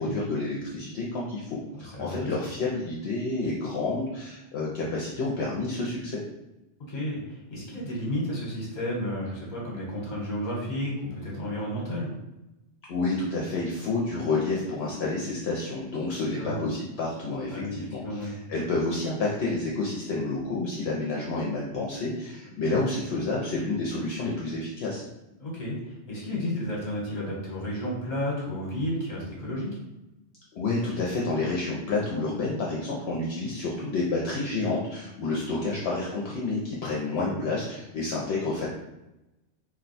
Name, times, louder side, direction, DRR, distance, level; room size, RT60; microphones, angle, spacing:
voice 1, 0.0-6.2 12.9-25.0 30.5-38.7, left 3 dB, 70° left, -4 dB, 0.8 m, -29 dB
voice 2, 1.9-2.3 6.9-12.1 16.4-16.6 17.5-18.3 25.4-29.8 37.2-37.4, left 1 dB, 45° left, -4 dB, 1.1 m, -32 dB
2.7 x 2.2 x 3.9 m, 0.94 s
omnidirectional pair, 1.2 m